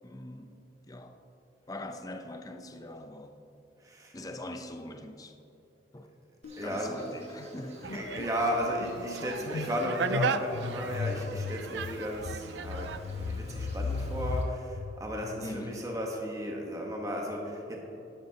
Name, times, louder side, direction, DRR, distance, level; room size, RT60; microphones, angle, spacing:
voice 1, 0.0-0.6 0.8-1.2 1.7-3.4 4.1-5.4 5.9-6.1 6.6-8.3 15.4-15.9, left 1 dB, 20° left, 6 dB, 0.6 m, -42 dB
sound 1, 6.4-6.8 7.0-15.8, left 3 dB, 80° left, 0.4 m, -37 dB
Insect, 6.4-14.4, right 1 dB, 35° right, 1.5 m, -52 dB
voice 2, 6.6-6.9 7.9-17.8, equal, 20° right, 0 dB, 1.1 m, -34 dB
sound 2, 7.8-13.0, right 6 dB, 70° right, 0.4 m, -37 dB
11.5 x 10.0 x 2.9 m, 3.0 s
head